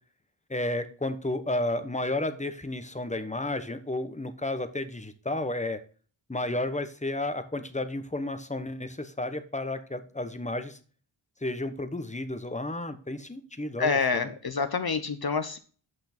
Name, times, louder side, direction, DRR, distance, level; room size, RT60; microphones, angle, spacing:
voice 1, 0.5-5.8 6.3-10.8 11.4-14.3, left 2 dB, 15° left, 10 dB, 1.0 m, -32 dB
voice 2, 13.8-15.6, left 5 dB, 50° left, 8 dB, 0.9 m, -27 dB
7.9 x 5.9 x 4.4 m, 0.40 s
wide cardioid pair, 60°, 50 cm